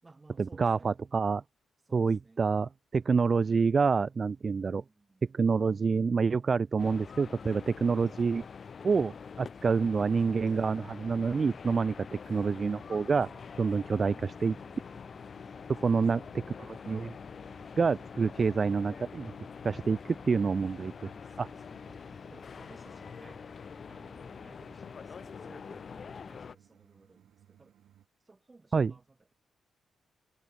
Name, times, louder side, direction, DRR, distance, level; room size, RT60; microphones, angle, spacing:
voice 1, 0.0-0.9 1.8-2.5 4.7-5.2 7.9-8.2 15.8-16.4 18.3-18.6 19.9-20.3 21.2-23.5 23.9-27.9 28.2-29.3, right 3 dB, 25° right, 7.7 m, -59 dB
voice 2, 0.6-1.4 1.9-4.8 5.3-8.4 8.8-13.3 13.6-14.1 14.4-14.5 15.7-17.1 17.8-19.3 19.6-20.0 20.3-21.1 21.4-21.5 28.7-28.9, right 5 dB, 40° right, 0.5 m, -27 dB
sound 1, 6.8-26.6, left 6 dB, 45° left, 0.4 m, -45 dB
sound 2, 12.7-28.1, right 11 dB, 85° right, 3.2 m, -63 dB
cardioid pair, 105°, 0 cm